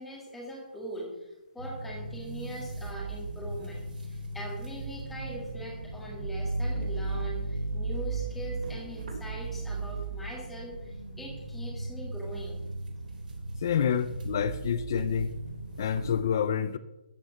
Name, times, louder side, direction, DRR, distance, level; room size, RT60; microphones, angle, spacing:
voice 1, 0.0-12.6, equal, ahead, 1.7 m, -42 dB
sound 1, 1.6-16.2, right 2 dB, 55° right, 3.5 m, -36 dB
voice 2, 13.6-15.3 15.8-16.8, left 8 dB, 20° left, 0.4 m, -28 dB
13.0 x 7.2 x 7.1 m
hypercardioid pair, 180°, 5 cm